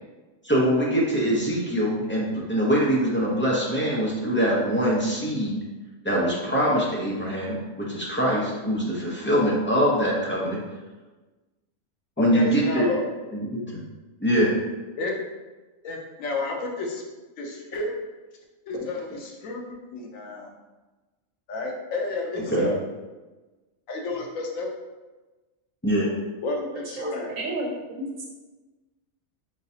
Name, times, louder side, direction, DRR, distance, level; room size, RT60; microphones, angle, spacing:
voice 1, 0.4-5.6 6.0-10.6 12.2-12.8 13.3-13.8 14.2-14.5 22.3-22.7 25.8-26.1, equal, 10° left, -6 dB, 0.7 m, -23 dB
voice 2, 12.3-13.0 15.0-15.1 15.8-17.0 17.4-17.9 18.7-19.6 19.9-20.5 21.5-22.8 23.9-24.7 26.4-27.4, left 2 dB, 90° left, 0 dB, 1.1 m, -31 dB
voice 3, 27.0-28.3, right 2 dB, 90° right, -1 dB, 1.2 m, -32 dB
3.9 x 3.7 x 2.8 m, 1.2 s
omnidirectional pair, 1.3 m